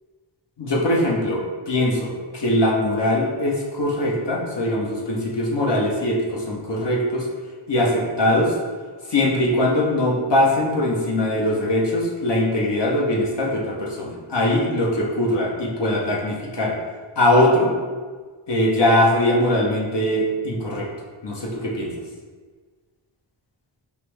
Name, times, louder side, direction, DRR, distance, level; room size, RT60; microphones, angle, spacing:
voice 1, 0.6-7.3 7.7-8.5 9.1-16.7 17.2-17.7 18.5-20.9 21.2-21.9, left 1 dB, 60° left, -2 dB, 0.9 m, -21 dB
5.2 x 2.0 x 3.2 m, 1.5 s
cardioid pair, 55°, 48 cm